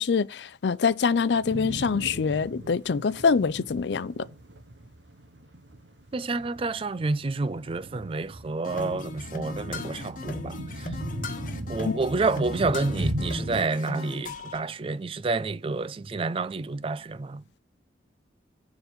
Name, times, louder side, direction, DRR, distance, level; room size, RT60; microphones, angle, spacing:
voice 1, 0.0-4.3 11.8-12.0, left 5 dB, 70° left, 0.4 m, -25 dB
sound 1, 1.2-13.6, right 1 dB, 85° right, 1.1 m, -38 dB
voice 2, 6.1-11.0 11.7-17.6, right 3 dB, 30° right, 0.4 m, -29 dB
sound 2, 8.6-14.6, left 2 dB, 45° left, 1.0 m, -38 dB
7.2 x 3.9 x 6.5 m
head